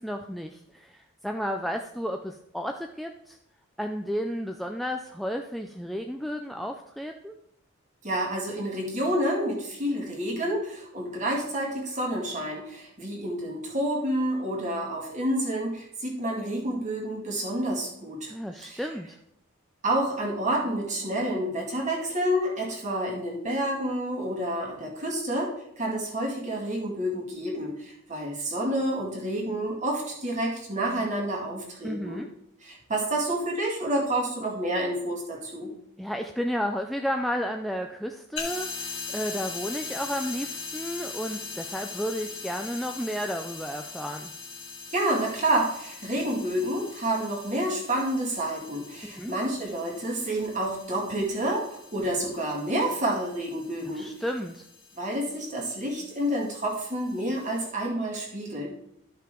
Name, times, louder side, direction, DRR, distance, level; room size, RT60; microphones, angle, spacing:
voice 1, 0.0-3.4 3.8-7.4 18.3-19.2 31.8-32.3 36.0-44.3 49.0-49.3 53.8-54.6, equal, ahead, 3 dB, 0.3 m, -32 dB
voice 2, 8.0-18.3 18.6-18.8 19.8-25.5 25.8-32.2 32.6-35.7 44.9-54.1 55.0-58.7, right 1 dB, 35° right, -2 dB, 2.1 m, -29 dB
sound 1, 38.4-57.7, left 5 dB, 65° left, 1.7 m, -41 dB
12.5 x 5.6 x 3.7 m, 0.77 s
head